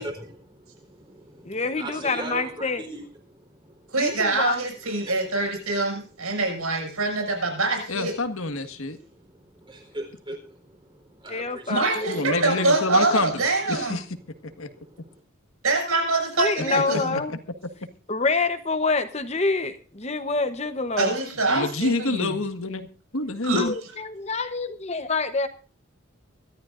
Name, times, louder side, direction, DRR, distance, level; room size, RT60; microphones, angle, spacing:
voice 1, 0.0-3.0 3.3-3.9 4.8-5.3 8.9-12.3 14.6-15.2, right 1 dB, 20° right, 4 dB, 4.0 m, -40 dB
voice 2, 1.4-2.8 4.0-4.6 11.3-12.7 16.4-17.3 18.1-21.1 23.6-25.5, left 3 dB, 30° left, 10 dB, 1.0 m, -27 dB
voice 3, 3.9-8.1 11.7-14.0 15.6-17.2 21.0-22.4 23.4-23.6, right 2 dB, 85° right, 3 dB, 6.6 m, -24 dB
voice 4, 7.9-9.0 12.1-13.4 13.7-14.2 14.6-14.7 16.7-17.4 21.5-22.9 23.1-23.7, left 2 dB, 75° left, 9 dB, 1.6 m, -28 dB
24.0 x 13.0 x 2.6 m, 0.39 s
head